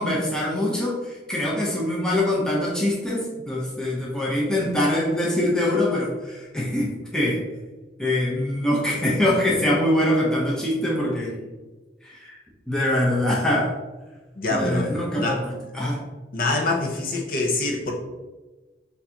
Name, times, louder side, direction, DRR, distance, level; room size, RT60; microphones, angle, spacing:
voice 1, 0.0-7.4 8.0-11.4 12.0-12.4 12.7-13.7 14.5-16.0, left 1 dB, 5° left, -5 dB, 0.7 m, -24 dB
voice 2, 14.4-14.9 15.2-15.5 16.3-17.9, left 2 dB, 50° left, -1 dB, 0.7 m, -25 dB
6.5 x 2.7 x 2.8 m, 1.2 s
head